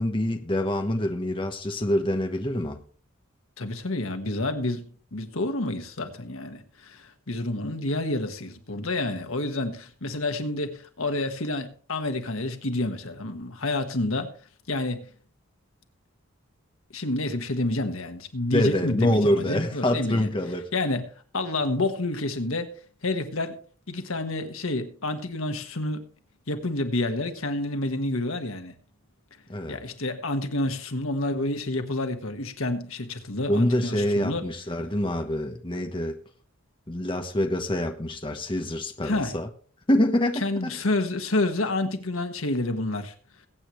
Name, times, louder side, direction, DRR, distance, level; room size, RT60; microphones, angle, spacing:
voice 1, 0.0-2.8 18.5-20.7 29.5-29.8 33.5-36.1 36.9-39.5 39.9-40.7, left 1 dB, 25° left, 1.1 m, -26 dB
voice 2, 3.6-14.3 14.7-15.1 16.9-20.3 20.7-21.1 21.3-22.7 23.0-23.6 23.9-26.0 26.5-28.7 29.7-34.4 39.0-39.4 40.4-43.1, left 2 dB, 80° left, 1.6 m, -29 dB
21.5 x 8.6 x 3.2 m
head